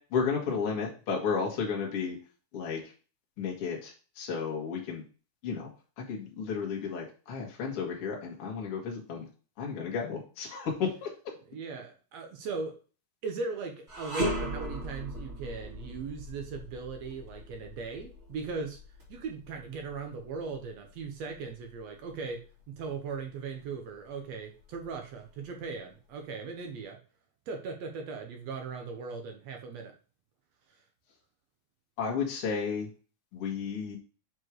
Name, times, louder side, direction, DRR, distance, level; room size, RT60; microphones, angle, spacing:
voice 1, 0.1-2.2 2.5-2.9 3.4-5.0 5.4-5.7 6.0-9.3 9.6-11.1 32.0-32.9 33.3-34.0, left 5 dB, 50° left, -2 dB, 2.3 m, -33 dB
voice 2, 11.5-12.8 13.2-18.8 19.1-22.4 22.7-27.0 27.5-29.9, right 4 dB, 65° right, 3 dB, 1.9 m, -38 dB
sound 1, 13.9-23.1 23.5-23.7 24.6-25.5, equal, 25° right, 1.9 m, -39 dB
6.2 x 4.5 x 4.7 m, 0.36 s
omnidirectional pair, 3.7 m